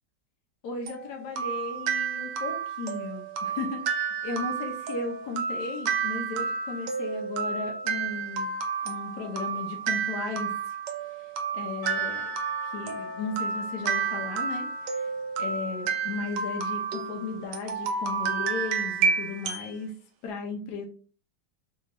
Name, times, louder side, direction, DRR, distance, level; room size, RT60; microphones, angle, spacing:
voice 1, 0.6-8.5 8.8-10.6 11.2-12.3 12.6-15.1 15.4-19.9 20.2-20.9, left 4 dB, 75° left, 2 dB, 1.2 m, -36 dB
sound 1, 0.9-19.7, right 6 dB, 80° right, 1.2 m, -31 dB
Percussion / Church bell, 11.8-16.2, left 7 dB, 50° left, 1.3 m, -46 dB
3.5 x 3.0 x 2.4 m, 0.39 s
omnidirectional pair, 1.8 m